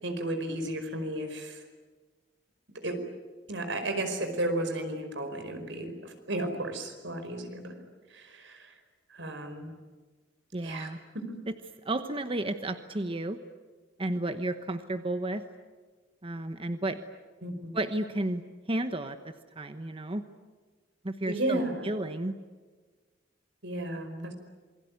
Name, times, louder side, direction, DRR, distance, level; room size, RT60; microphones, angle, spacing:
voice 1, 0.0-1.6 2.7-3.0 3.5-7.7 8.1-8.8 9.1-9.8 10.6-11.4 17.4-17.7 21.3-21.9 23.6-24.3, right 1 dB, 80° right, 7 dB, 5.0 m, -34 dB
voice 2, 10.5-11.0 11.5-11.6 11.8-13.4 14.0-15.4 16.2-17.0 17.7-18.4 18.7-20.2 21.0-22.3 23.9-24.3, right 1 dB, 30° right, 9 dB, 1.1 m, -32 dB
27.5 x 22.0 x 9.6 m, 1.4 s
head